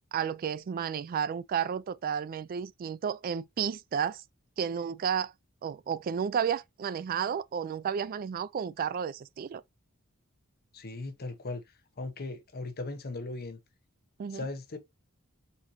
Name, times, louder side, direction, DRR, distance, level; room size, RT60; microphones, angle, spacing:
voice 1, 0.1-4.2 4.6-5.3 5.6-9.6 14.2-14.5, right 7 dB, 40° right, 0.3 m, -32 dB
voice 2, 10.7-11.6 12.0-13.6 14.3-14.8, left 2 dB, 45° left, 0.8 m, -38 dB
4.1 x 4.0 x 2.9 m
head